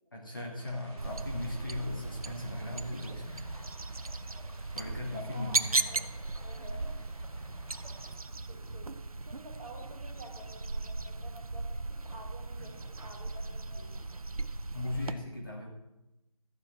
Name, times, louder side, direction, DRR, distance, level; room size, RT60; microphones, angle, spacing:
voice 1, 0.1-3.5 4.7-6.1 12.6-12.7 13.8-14.1 14.7-15.7, left 2 dB, 35° left, -2 dB, 2.2 m, -38 dB
sound 1, 0.6-8.1, equal, ahead, 1.6 m, -53 dB
sound 2, 1.0-15.1, right 3 dB, 70° right, 0.7 m, -37 dB
voice 2, 5.3-6.0 6.3-7.0 8.3-8.9 9.2-12.7 13.0-13.9, right 1 dB, 20° right, -8 dB, 2.7 m, -50 dB
13.5 x 4.9 x 7.7 m, 0.95 s
figure-of-eight pair, 175°, 19 cm